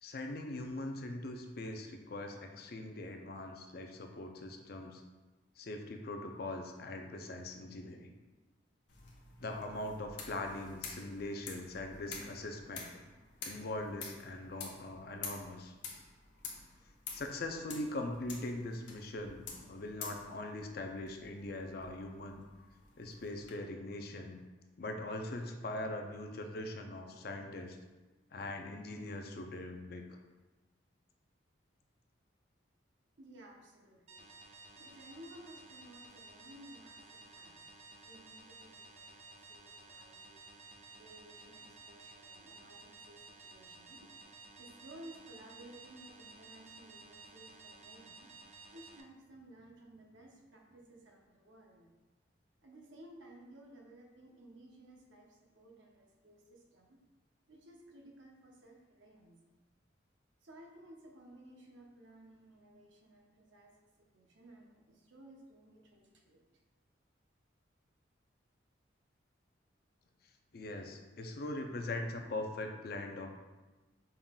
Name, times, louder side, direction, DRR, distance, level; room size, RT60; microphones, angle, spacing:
voice 1, 0.0-5.0 5.6-8.2 9.4-12.9 13.4-15.7 17.1-22.4 23.0-24.4 24.8-27.8 28.3-30.2 70.5-73.3, left 2 dB, 55° left, 4 dB, 0.5 m, -41 dB
sound 1, 8.9-23.5, left 5 dB, 70° left, 0.8 m, -49 dB
voice 2, 33.2-34.3 34.8-37.6 38.0-44.1 44.6-48.3 48.7-51.9 52.6-57.0 57.5-59.4 60.4-66.5, right 1 dB, 80° right, 1 dB, 0.8 m, -56 dB
sound 2, 34.1-49.0, right 3 dB, 35° right, 0.4 m, -55 dB
5.5 x 3.7 x 2.3 m, 1.2 s
head